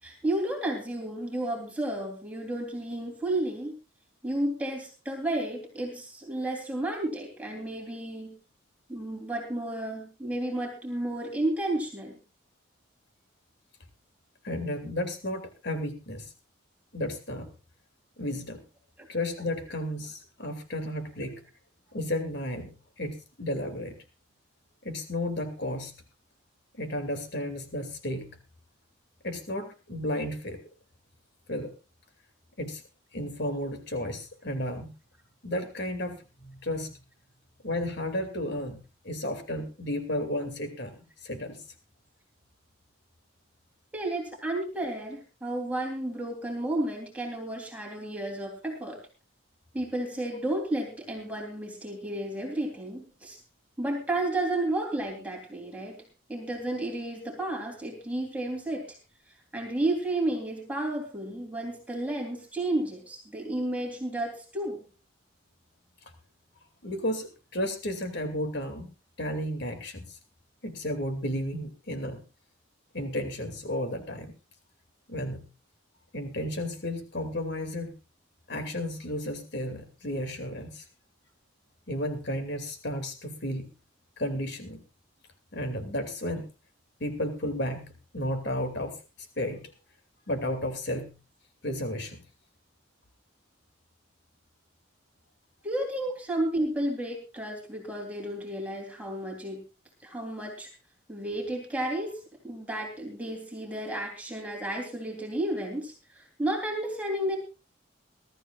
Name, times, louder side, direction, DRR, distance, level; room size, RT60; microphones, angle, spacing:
voice 1, 0.0-3.7 4.2-8.4 8.9-12.2 19.0-19.1 43.9-49.0 49.7-53.4 53.8-55.9 56.3-58.9 59.5-64.9 95.6-99.6 100.0-100.7 101.1-102.1 102.4-107.4, right 1 dB, 5° right, 0 dB, 3.3 m, -32 dB
voice 2, 14.4-16.3 16.9-17.5 18.2-18.6 19.1-21.4 21.9-24.0 24.8-25.9 26.7-28.4 29.2-30.6 31.5-31.7 32.6-32.8 33.1-34.9 35.4-36.9 37.6-40.9 41.2-41.6 66.8-68.9 69.2-70.2 70.6-72.2 72.9-74.3 75.1-75.5 76.1-77.9 78.5-80.8 81.9-83.7 84.2-84.8 85.5-86.4 87.0-88.9 89.4-89.6 90.3-91.2 91.6-92.2, left 1 dB, 55° left, 6 dB, 2.5 m, -33 dB
22.0 x 13.0 x 2.4 m, 0.30 s
head